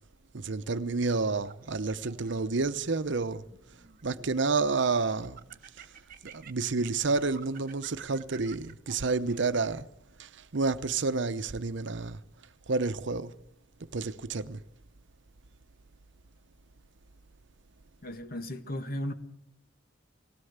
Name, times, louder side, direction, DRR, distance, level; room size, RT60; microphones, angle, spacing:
voice 1, 0.3-3.4 4.0-5.4 6.2-9.9 10.2-12.2 12.7-13.3 13.9-14.6, right 3 dB, 65° right, 0.8 m, -29 dB
Laughter, 1.4-2.7 3.3-4.4 4.8-9.9, right 5 dB, 45° right, 1.4 m, -51 dB
voice 2, 18.0-19.1, equal, 50° left, 1.9 m, -35 dB
19.5 x 16.5 x 8.1 m
head